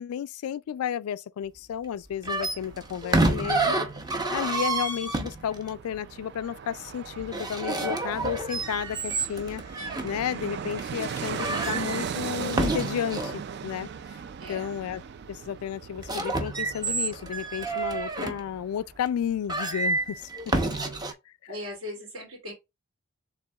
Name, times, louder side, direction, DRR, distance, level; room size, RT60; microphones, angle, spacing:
voice 1, 0.0-3.8 4.3-9.6 10.0-13.9 14.5-15.0 15.3-20.3, left 9 dB, 90° left, 0.3 m, -32 dB
Fixed-wing aircraft airplane, 2.1-19.1 19.4-19.5, right 7 dB, 50° right, 0.3 m, -39 dB
sound 1, 2.2-5.7 7.2-10.1 10.7-10.8 11.2-13.4 15.9-18.4 19.1-19.2 19.5-21.1, right 2 dB, 20° right, 0.6 m, -29 dB
voice 2, 20.5-21.1 21.5-22.5, left 1 dB, 70° right, 2.8 m, -39 dB
6.7 x 3.5 x 2.3 m
head